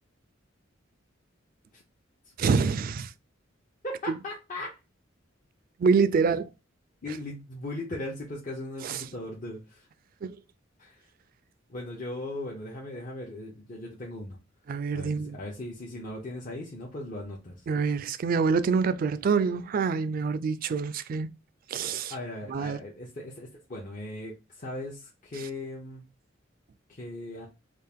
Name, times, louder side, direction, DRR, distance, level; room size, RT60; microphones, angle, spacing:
voice 1, 2.4-3.1 5.8-6.5 8.8-9.0 10.2-10.4 14.7-15.4 17.7-21.3 21.7-22.1 22.5-22.8, right 5 dB, 45° right, 0.3 m, -26 dB
voice 2, 3.8-4.8 7.0-9.9 10.8-11.0 11.7-14.4 14.9-17.6 22.1-26.0 26.9-27.5, left 1 dB, 45° left, 0.7 m, -38 dB
3.6 x 2.4 x 3.4 m
head